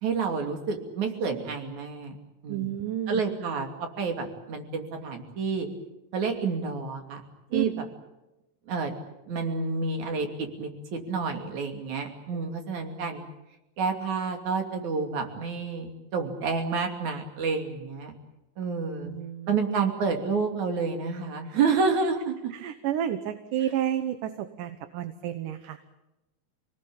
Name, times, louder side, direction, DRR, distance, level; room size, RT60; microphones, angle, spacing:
voice 1, 0.0-2.2 2.4-2.7 3.1-3.7 4.0-5.7 6.1-7.2 7.5-7.7 8.7-8.9 9.3-13.2 13.8-18.1 18.6-19.1 19.5-22.5, right 4 dB, 60° right, 4 dB, 4.1 m, -29 dB
voice 2, 2.5-3.2 7.5-7.7 12.3-12.5 19.0-19.6 22.5-25.8, right 11 dB, 75° right, 9 dB, 2.7 m, -31 dB
27.5 x 19.0 x 8.7 m, 0.98 s
omnidirectional pair, 3.8 m